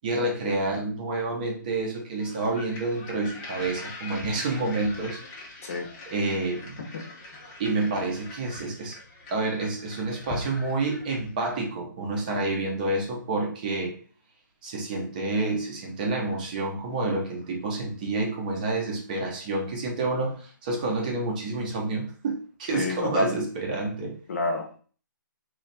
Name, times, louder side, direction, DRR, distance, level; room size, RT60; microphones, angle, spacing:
voice 1, 0.0-5.2 6.1-6.8 7.6-9.0 9.3-13.9 14.6-24.1, right 2 dB, 25° right, 0 dB, 0.7 m, -29 dB
sound 1, 2.2-11.5, left 3 dB, 15° left, 0.5 m, -42 dB
voice 2, 22.7-23.4 24.3-24.8, left 2 dB, 45° left, 3 dB, 0.8 m, -27 dB
3.2 x 2.4 x 4.1 m, 0.42 s
hypercardioid pair, 165°, 11 cm